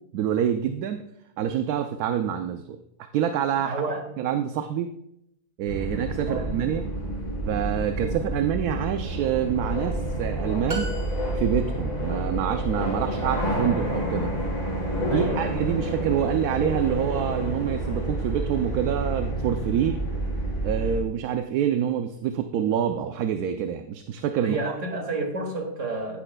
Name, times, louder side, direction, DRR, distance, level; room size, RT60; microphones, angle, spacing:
voice 1, 0.1-1.0 1.4-2.8 3.1-3.8 4.2-4.9 5.6-6.9 7.5-10.9 11.3-14.3 15.1-20.0 20.6-24.6, right 9 dB, 70° right, 7 dB, 1.1 m, -26 dB
voice 2, 3.6-4.0 6.3-6.4 15.1-15.6 24.4-26.2, right 3 dB, 50° right, 2 dB, 2.4 m, -30 dB
sound 1, 5.7-21.0, right 1 dB, 25° left, 3.2 m, -29 dB
sound 2, 10.7-11.8, left 1 dB, 30° right, 1.7 m, -35 dB
15.5 x 10.5 x 2.3 m, 0.79 s
omnidirectional pair, 1.8 m